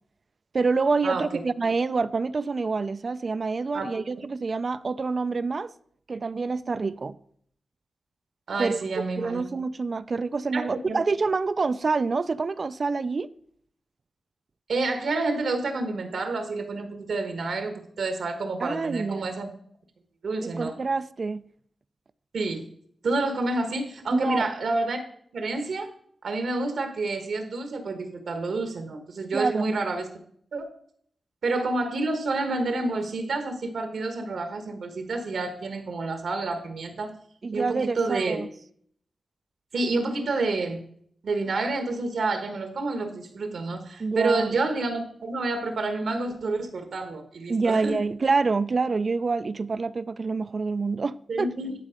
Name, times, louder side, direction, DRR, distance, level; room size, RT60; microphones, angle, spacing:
voice 1, 0.5-5.7 6.1-7.2 8.6-8.8 9.2-13.3 18.6-19.4 20.4-21.4 24.1-24.4 29.3-29.7 37.4-38.5 44.0-44.5 47.5-51.5, right 4 dB, 50° right, 0.3 m, -27 dB
voice 2, 8.5-9.4 10.5-11.0 14.7-19.5 20.2-20.7 22.3-22.6 23.0-25.0 25.3-25.9 26.2-30.1 30.5-30.7 31.4-37.1 37.5-38.4 39.7-40.8 41.2-48.0 51.3-51.7, right 3 dB, 80° right, 1.1 m, -29 dB
10.5 x 4.0 x 5.0 m
cardioid pair, 70°, 0 cm